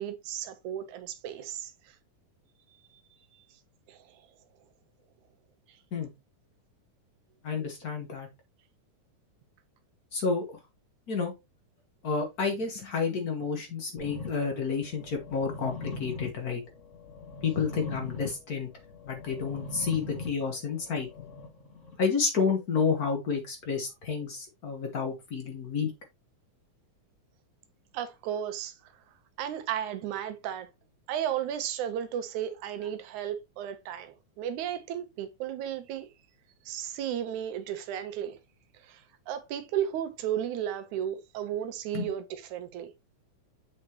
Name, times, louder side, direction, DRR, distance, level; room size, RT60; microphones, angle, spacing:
voice 1, 0.0-2.0 2.9-3.0 3.9-4.2 27.9-28.9 29.4-30.7 31.1-36.1 36.7-38.4 38.7-42.9, right 10 dB, 80° right, 2.2 m, -34 dB
voice 2, 7.4-8.3 10.1-10.4 11.1-11.3 12.0-16.6 17.4-18.7 19.0-21.3 22.0-25.9 41.9-42.0, left 5 dB, 80° left, 0.8 m, -30 dB
sound 1, 14.0-21.9, left 4 dB, 25° left, 2.2 m, -42 dB
7.3 x 5.0 x 2.9 m
omnidirectional pair, 3.5 m